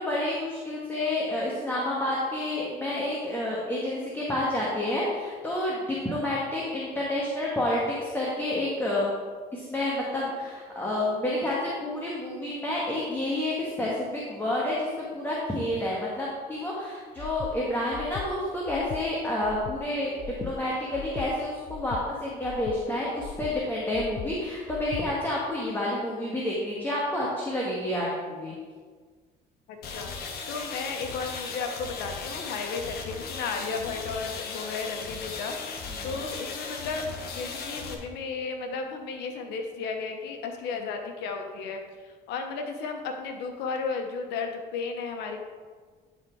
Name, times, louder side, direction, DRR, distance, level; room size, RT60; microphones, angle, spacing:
voice 1, 0.0-9.1 9.5-14.9 15.1-20.1 20.4-28.5 35.9-36.3, left 1 dB, 10° left, -5 dB, 1.6 m, -29 dB
Breathing, 17.2-17.5 17.9-18.3 18.7-19.0 19.4-19.8 20.2-20.5 20.9-21.3 21.7-22.0 22.4-22.8 23.2-23.5 23.9-24.3 24.7-25.0, left 10 dB, 50° left, 0.4 m, -39 dB
voice 2, 29.7-30.1 30.5-37.0 37.3-45.4, left 4 dB, 90° left, 4 dB, 1.1 m, -34 dB
sound 1, 29.8-37.9, left 4 dB, 70° left, 1.3 m, -37 dB
11.5 x 4.1 x 4.7 m, 1.5 s
cardioid pair, 110°, 17 cm